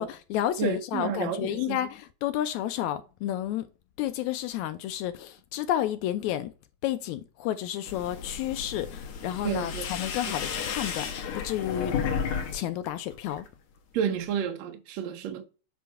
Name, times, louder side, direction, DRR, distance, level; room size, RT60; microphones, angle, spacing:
voice 1, 0.0-3.7 4.0-6.5 6.8-12.0 12.5-13.4, left 12 dB, 85° left, 1.6 m, -31 dB
voice 2, 0.6-1.8 9.4-9.8 13.9-15.5, right 8 dB, 75° right, 1.7 m, -30 dB
sound 1, 7.9-12.5 12.8-13.5, left 7 dB, 65° left, 2.2 m, -33 dB
8.3 x 3.1 x 4.6 m
omnidirectional pair, 3.8 m